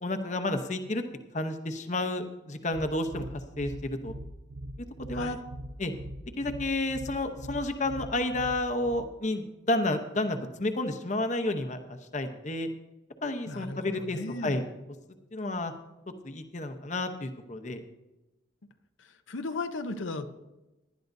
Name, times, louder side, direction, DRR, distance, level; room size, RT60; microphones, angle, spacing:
voice 1, 0.0-1.0 1.3-3.2 3.6-4.1 5.1-5.4 5.8-5.9 6.4-12.7 13.2-14.6 15.3-15.7 16.2-17.8, left 2 dB, 35° left, 7 dB, 0.8 m, -31 dB
sound 1, 2.7-9.1, right 1 dB, 75° right, 0.6 m, -42 dB
voice 2, 13.5-14.6 19.0-20.3, left 2 dB, 75° left, 7 dB, 0.8 m, -36 dB
18.5 x 11.5 x 2.7 m, 1.0 s
head